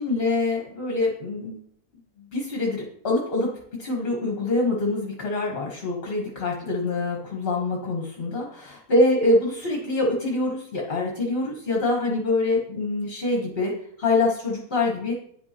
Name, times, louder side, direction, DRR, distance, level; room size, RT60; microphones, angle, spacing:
voice 1, 0.0-1.6 2.2-3.5 3.8-13.7 14.0-15.1, left 2 dB, 45° left, -1 dB, 1.2 m, -25 dB
9.3 x 5.2 x 2.8 m, 0.68 s
omnidirectional pair, 1.6 m